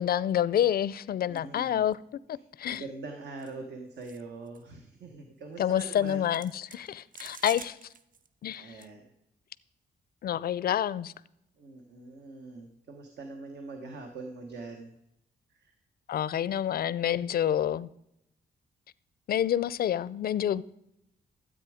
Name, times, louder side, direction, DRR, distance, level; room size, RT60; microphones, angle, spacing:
voice 1, 0.0-2.0 2.3-2.8 5.6-7.8 8.4-8.7 10.2-11.1 16.1-17.9 19.3-20.6, left 10 dB, 55° left, 0.4 m, -28 dB
voice 2, 1.3-1.9 2.3-6.3 6.7-7.0 8.5-9.1 11.6-14.9 15.5-15.7, right 3 dB, 70° right, 1.4 m, -43 dB
sound 1, 1.4-1.6 1.9-2.0 2.7-2.8 3.4-3.5 4.0-4.2 4.5-4.6 5.9-8.3 8.5-8.9, right 6 dB, 50° right, 0.7 m, -48 dB
13.0 x 8.3 x 5.0 m
wide cardioid pair, 135°, 18 cm